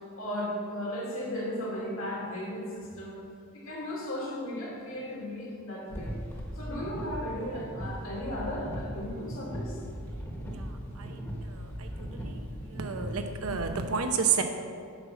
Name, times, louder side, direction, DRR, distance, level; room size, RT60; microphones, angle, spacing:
voice 1, 0.2-3.2 3.5-6.1 6.5-9.8, left 1 dB, 70° left, -4 dB, 2.5 m, -35 dB
sound 1, 5.9-13.8, equal, 10° left, 1.1 m, -38 dB
voice 2, 11.5-11.9 12.2-12.4 12.7-14.4, right 6 dB, 90° right, 6 dB, 0.8 m, -30 dB
8.2 x 5.7 x 5.9 m, 2.2 s
head